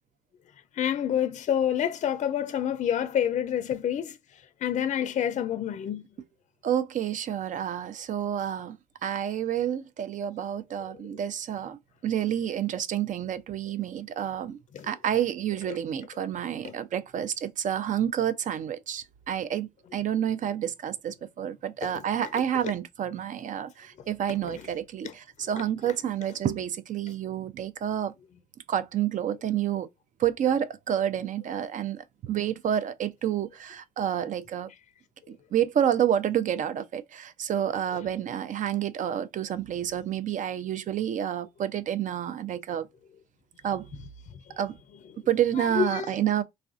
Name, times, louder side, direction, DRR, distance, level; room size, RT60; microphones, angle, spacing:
voice 1, 0.8-4.1 4.6-6.0 14.7-14.9 16.6-16.7 21.8-21.9 25.0-25.1 45.6-46.1, left 9 dB, 50° left, 0.4 m, -27 dB
voice 2, 6.6-14.6 14.9-28.1 28.7-29.9 30.2-34.7 35.3-42.9 43.6-43.9 44.6-44.7 45.3-46.4, right 10 dB, 55° right, 0.5 m, -29 dB
3.2 x 2.4 x 2.4 m
supercardioid pair, 65°, 15 cm